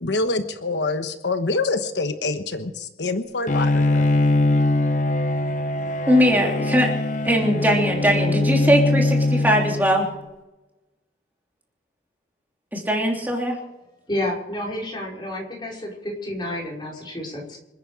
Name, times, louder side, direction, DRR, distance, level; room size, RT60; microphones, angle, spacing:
voice 1, 0.0-4.1, left 3 dB, 85° left, 8 dB, 1.2 m, -26 dB
Bowed string instrument, 3.5-10.1, left 2 dB, 45° left, 0.8 m, -22 dB
voice 2, 6.1-6.9 7.2-10.1 12.7-13.6, equal, 10° right, -1 dB, 3.3 m, -20 dB
voice 3, 14.1-15.9 16.2-17.6, left 1 dB, 25° left, -2 dB, 5.0 m, -30 dB
27.5 x 9.9 x 4.9 m, 1.0 s
head